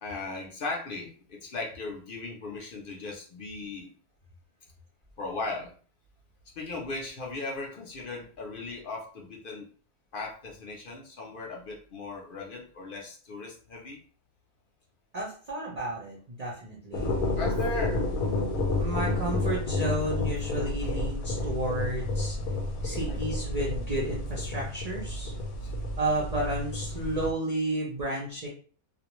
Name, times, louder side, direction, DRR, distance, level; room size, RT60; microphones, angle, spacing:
voice 1, 0.0-3.9 5.2-5.7 6.6-9.7 10.1-14.0 17.4-18.1 22.9-23.2 25.6-25.7, left 3 dB, 55° left, -1 dB, 0.6 m, -37 dB
voice 2, 15.1-17.2 18.8-22.4 22.8-25.3 26.0-28.5, right 1 dB, 60° right, -3 dB, 0.4 m, -32 dB
sound 1, 16.9-27.3, left 2 dB, 85° left, 1.1 m, -30 dB
2.4 x 2.1 x 3.0 m, 0.42 s
omnidirectional pair, 1.5 m